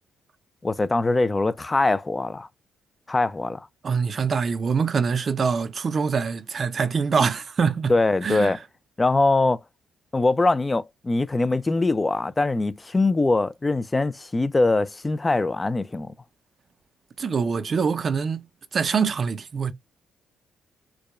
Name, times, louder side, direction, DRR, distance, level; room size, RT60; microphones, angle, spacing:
voice 1, 0.6-2.5 3.1-3.7 7.9-8.6 9.0-9.6 10.1-16.1, left 2 dB, 20° left, 0.3 m, -22 dB
voice 2, 3.8-7.9 8.2-8.6 17.2-19.7, right 5 dB, 45° right, 0.5 m, -24 dB
4.6 x 2.2 x 2.4 m
cardioid pair, 90°, 0 cm